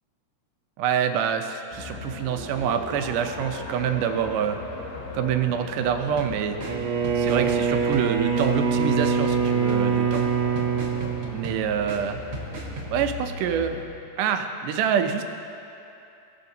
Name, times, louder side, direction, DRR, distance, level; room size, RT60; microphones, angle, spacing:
voice 1, 0.8-4.6 5.1-6.6 7.2-10.3 11.3-12.2 12.9-13.8 14.2-15.2, right 8 dB, 90° right, 6 dB, 2.2 m, -26 dB
sound 1, 1.7-13.9, left 3 dB, 70° left, 1.4 m, -38 dB
sound 2, 6.2-13.1, right 2 dB, 50° right, 1.8 m, -39 dB
Bowed string instrument, 6.6-11.9, right 6 dB, 70° right, 1.9 m, -24 dB
18.0 x 6.7 x 2.7 m, 2.8 s
omnidirectional pair, 3.6 m